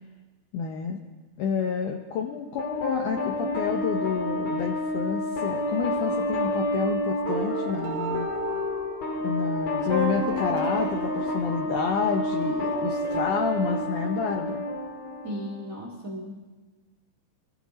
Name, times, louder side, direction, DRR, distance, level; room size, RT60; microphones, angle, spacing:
voice 1, 0.5-1.0 1.4-8.3 9.2-14.7, left 6 dB, 80° left, 3 dB, 1.8 m, -29 dB
sound 1, 2.6-15.6, left 1 dB, 50° left, 2.5 m, -29 dB
sound 2, 5.9-13.1, equal, 10° left, 3.0 m, -48 dB
sound 3, 7.3-12.1 12.4-13.6, right 10 dB, 80° right, 2.6 m, -37 dB
voice 2, 15.2-16.4, equal, 55° right, 0 dB, 0.9 m, -36 dB
23.5 x 15.0 x 4.2 m, 1.3 s
omnidirectional pair, 4.9 m